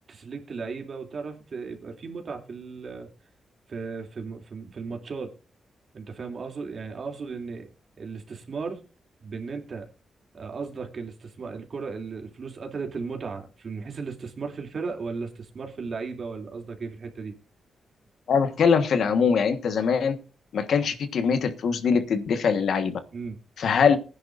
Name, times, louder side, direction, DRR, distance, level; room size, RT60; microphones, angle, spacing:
voice 1, 0.1-3.1 3.7-5.3 5.9-7.7 8.0-8.8 9.2-9.8 10.3-17.3 23.1-23.4, right 4 dB, 55° right, 3 dB, 2.8 m, -36 dB
voice 2, 18.3-20.2 20.5-23.0 23.6-24.0, left 6 dB, 75° left, 10 dB, 1.4 m, -22 dB
20.0 x 10.5 x 2.5 m, 0.32 s
cardioid pair, 80°, 0 cm